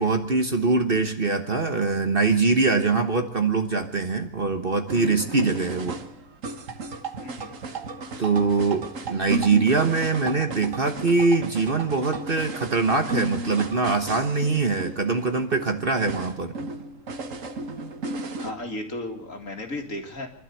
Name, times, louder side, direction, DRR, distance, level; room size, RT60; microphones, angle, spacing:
voice 1, 0.0-6.0 8.2-16.5, right 4 dB, 35° right, 6 dB, 1.4 m, -23 dB
sound 1, 4.9-18.5, right 3 dB, 55° right, 1.7 m, -34 dB
voice 2, 7.2-7.5 18.3-20.3, left 1 dB, 55° left, 3 dB, 2.7 m, -34 dB
25.5 x 12.5 x 8.4 m, 0.69 s
omnidirectional pair, 1.7 m